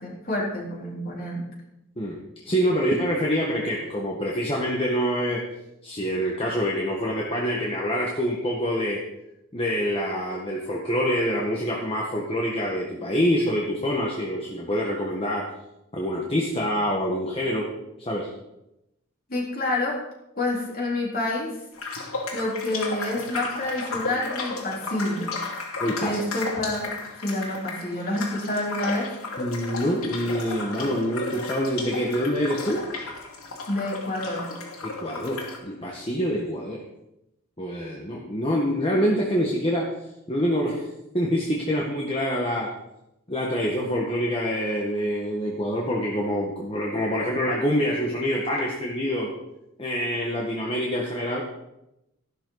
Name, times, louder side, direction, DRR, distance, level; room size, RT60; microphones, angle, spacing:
voice 1, 0.0-1.5 19.3-20.0 20.4-21.5 22.3-25.4 26.0-29.1 33.7-34.5, left 1 dB, 45° left, -3 dB, 4.1 m, -28 dB
voice 2, 2.0-5.4 5.8-9.0 9.5-15.4 15.9-17.7 18.0-18.3 25.8-26.2 29.4-32.8 34.8-36.8 37.6-39.9 40.3-40.9 41.1-42.7 43.3-49.3 49.8-51.4, equal, 25° left, -3 dB, 1.7 m, -26 dB
sound 1, 21.7-35.6, left 3 dB, 90° left, 2.6 m, -34 dB
15.0 x 12.0 x 4.1 m, 0.88 s
head